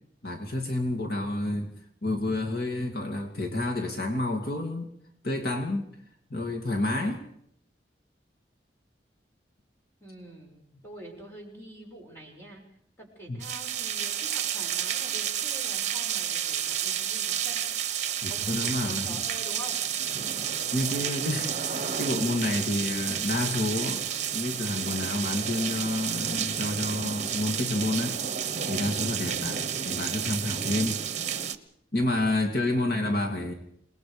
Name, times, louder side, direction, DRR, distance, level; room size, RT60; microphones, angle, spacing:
voice 1, 0.2-1.7 2.0-4.9 5.2-6.0 6.3-7.2 13.3-13.4 18.2-19.2 20.7-28.2 28.7-31.0 31.9-33.5, left 1 dB, 60° left, 1 dB, 2.5 m, -29 dB
voice 2, 10.0-12.6 13.0-17.6 18.3-20.2 32.3-32.5, right 1 dB, 15° left, 0 dB, 6.1 m, -46 dB
sound 1, 13.4-31.6, right 9 dB, 40° right, 1.3 m, -31 dB
28.5 x 20.0 x 5.1 m, 0.68 s
head